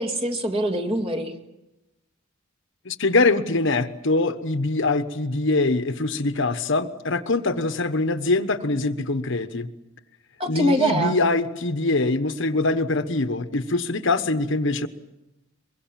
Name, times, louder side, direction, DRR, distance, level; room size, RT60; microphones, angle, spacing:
voice 1, 0.0-1.3 10.4-11.3, right 1 dB, 30° right, 2.2 m, -24 dB
voice 2, 2.8-9.7 10.5-14.9, left 2 dB, 65° left, 1.2 m, -23 dB
23.5 x 23.0 x 7.6 m
head